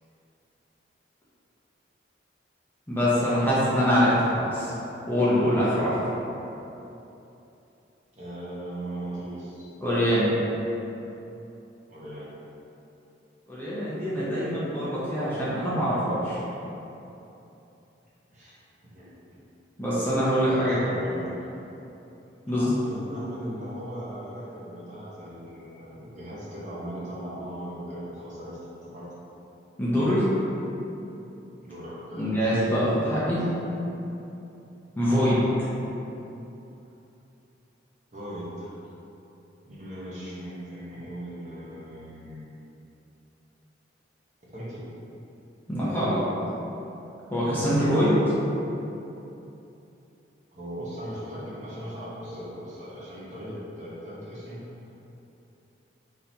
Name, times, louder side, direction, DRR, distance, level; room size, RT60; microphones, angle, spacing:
voice 1, 2.9-4.7 5.1-6.0 9.8-10.3 13.5-16.4 19.8-20.8 22.5-22.6 29.8-30.3 32.2-33.4 35.0-35.4 45.7-46.2 47.3-48.3, equal, 10° left, -10 dB, 0.8 m, -24 dB
voice 2, 8.1-9.7 11.9-12.3 18.3-18.6 18.9-19.1 20.3-21.3 22.5-28.6 28.9-29.1 31.6-32.5 35.1-35.4 38.1-38.8 39.6-42.5 44.5-44.8 50.5-54.6, right 1 dB, 40° right, -9 dB, 1.0 m, -38 dB
4.1 x 3.9 x 2.8 m, 2.9 s
head